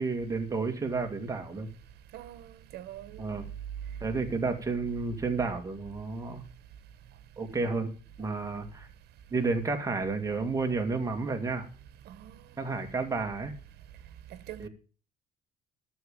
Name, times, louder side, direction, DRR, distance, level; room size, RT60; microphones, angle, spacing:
voice 1, 0.0-1.7 3.2-3.5 4.0-6.4 7.4-7.9 8.2-8.9 9.3-11.7 12.6-13.5 14.6-14.7, right 4 dB, 20° right, 2.3 m, -31 dB
voice 2, 2.1-3.2 8.2-8.3 12.1-12.3 14.5-14.7, right 12 dB, 70° right, 1.4 m, -44 dB
12.5 x 7.1 x 7.3 m
cardioid pair, 110°, 17 cm